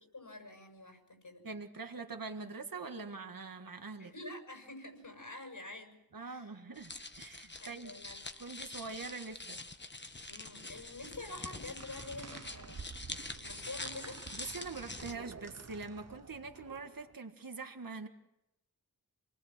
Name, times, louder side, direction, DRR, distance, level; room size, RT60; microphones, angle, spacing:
voice 1, 0.1-1.4 4.0-5.9 6.2-6.6 7.6-8.5 10.3-12.9 13.4-14.2, left 2 dB, 65° left, 5 dB, 6.7 m, -47 dB
voice 2, 1.4-4.1 6.1-7.9 8.4-9.6 14.3-18.1, right 4 dB, 70° right, 5 dB, 1.8 m, -44 dB
sound 1, 6.8-15.1, left 2 dB, 30° left, 1.3 m, -45 dB
sound 2, 11.8-17.1, right 5 dB, 45° right, 0.8 m, -50 dB
28.0 x 20.5 x 7.4 m, 0.88 s
wide cardioid pair, 70°, 36 cm